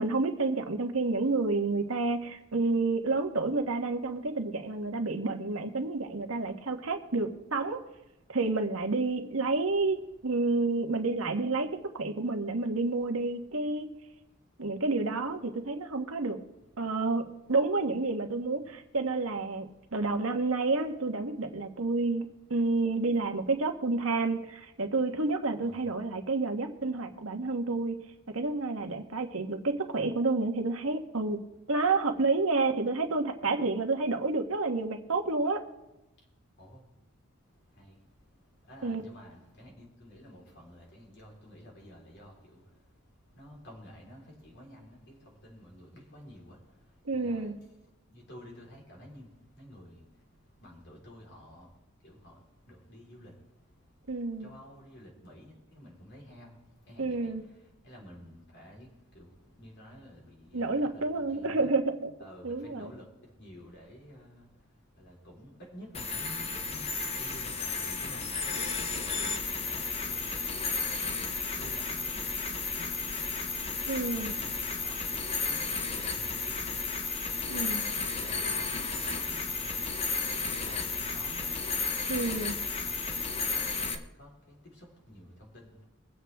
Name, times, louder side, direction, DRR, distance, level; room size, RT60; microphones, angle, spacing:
voice 1, 0.0-7.8 8.3-13.9 14.6-16.4 16.8-28.0 28.3-31.4 31.7-35.6 38.8-39.0 47.0-47.5 54.1-54.5 57.0-57.4 60.5-62.1 62.4-62.9 73.9-74.3 77.5-77.8 82.1-82.5, right 3 dB, 85° right, 1.4 m, -29 dB
voice 2, 25.6-25.9 36.6-36.8 37.8-38.0 38.7-42.6 43.3-46.6 47.1-47.5 48.1-49.3 49.6-50.0 50.6-51.7 52.0-52.4 52.7-53.3 54.4-56.6 56.9-57.3 57.8-58.9 59.1-61.7 62.2-64.5 65.0-69.3 69.6-73.3 74.1-75.2 75.5-76.7 77.3-79.9 80.2-81.5 82.1-83.0 83.5-83.7 84.2-85.7, equal, 55° left, 4.0 m, -51 dB
sound 1, 65.9-83.9, left 4 dB, 30° left, 1.0 m, -33 dB
22.5 x 7.9 x 3.5 m
head